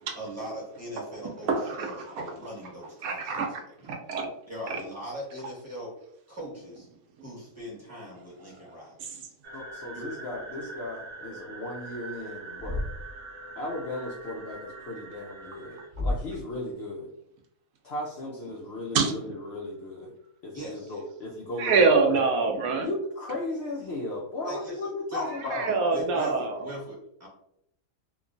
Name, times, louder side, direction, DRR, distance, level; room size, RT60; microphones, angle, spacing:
voice 1, 0.1-1.5 1.8-3.4 3.8-3.9 4.5-5.9 6.3-6.9 7.2-9.0 9.9-10.2 20.5-20.9 24.4-25.2 25.9-27.3, equal, 10° right, -5 dB, 1.0 m, -40 dB
voice 2, 1.5-2.1 3.0-3.5 3.8-4.3 4.7-4.8 9.0-9.1 18.9-19.2 21.6-22.9 25.3-26.6, right 4 dB, 80° right, 2 dB, 1.0 m, -25 dB
sound 1, 9.4-15.9, right 2 dB, 60° right, 0.5 m, -43 dB
voice 3, 9.5-12.8 13.6-15.8 16.0-17.1 17.8-20.1 20.4-22.2 22.8-25.7, left 1 dB, 65° left, -3 dB, 0.6 m, -35 dB
Thump thud, 12.6-13.2 15.9-16.5, left 1 dB, 5° left, 0.7 m, -31 dB
3.0 x 2.2 x 2.5 m, 0.76 s
omnidirectional pair, 1.5 m